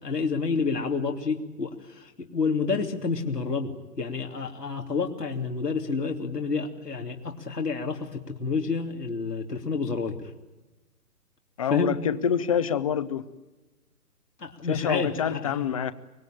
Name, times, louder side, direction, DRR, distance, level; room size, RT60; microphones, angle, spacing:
voice 1, 0.0-10.2 11.7-12.0 14.4-15.7, left 4 dB, 90° left, 3.1 m, -29 dB
voice 2, 11.6-13.2 14.7-15.9, left 8 dB, 20° left, 0.8 m, -26 dB
24.5 x 21.0 x 9.0 m
figure-of-eight pair, 145°, 46 cm